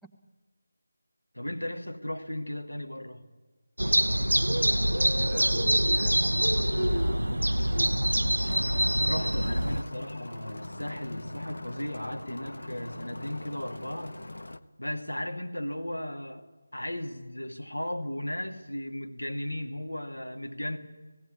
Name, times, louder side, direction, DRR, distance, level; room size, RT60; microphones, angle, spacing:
voice 1, 1.3-3.2 8.9-14.2 14.8-20.8, left 1 dB, 80° left, 4 dB, 2.4 m, -36 dB
sound 1, 3.8-9.8, equal, 80° right, 0.6 m, -25 dB
voice 2, 4.8-9.7, equal, ahead, -2 dB, 1.2 m, -52 dB
sound 2, 8.4-14.6, left 1 dB, 65° left, 1.1 m, -41 dB
17.5 x 17.0 x 9.7 m, 1.3 s
figure-of-eight pair, 160°, 0 cm